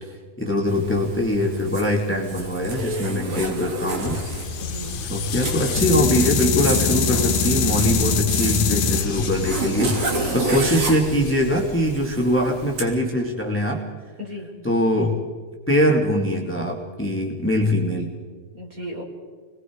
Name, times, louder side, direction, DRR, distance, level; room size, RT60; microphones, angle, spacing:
voice 1, 0.0-4.2 5.0-13.8 14.6-15.2 15.7-18.1, left 1 dB, 5° left, 0 dB, 2.1 m, -22 dB
Zipper (clothing), 0.7-12.9, right 2 dB, 60° right, 4.4 m, -31 dB
sound 1, 4.0-12.1, left 5 dB, 75° left, 2.7 m, -25 dB
voice 2, 4.6-5.0 10.1-10.5 14.2-14.5 18.5-19.0, equal, 25° right, 1 dB, 4.2 m, -35 dB
30.0 x 21.5 x 4.8 m, 1.5 s
omnidirectional pair, 3.5 m